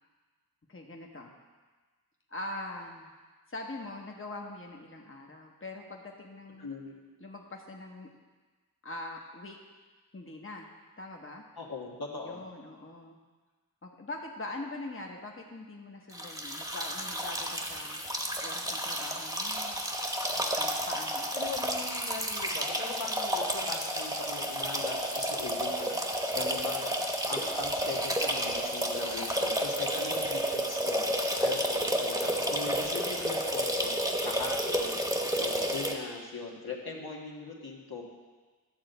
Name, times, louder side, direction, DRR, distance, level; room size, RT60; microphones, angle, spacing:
voice 1, 0.7-1.3 2.3-3.1 3.5-6.7 7.2-8.1 8.8-9.6 10.1-10.7 11.0-11.4 12.1-13.2 13.8-19.7 20.6-21.3, left 2 dB, 35° left, 1 dB, 1.0 m, -43 dB
voice 2, 6.6-6.9 11.6-12.4 21.3-26.0 26.3-27.0 27.3-31.1 31.4-33.9 34.2-35.1 35.4-38.0, left 4 dB, 80° left, -2 dB, 1.4 m, -40 dB
sound 1, 16.1-35.9, equal, 10° right, 1.1 m, -31 dB
11.5 x 3.9 x 7.9 m, 1.4 s
wide cardioid pair, 65°, 36 cm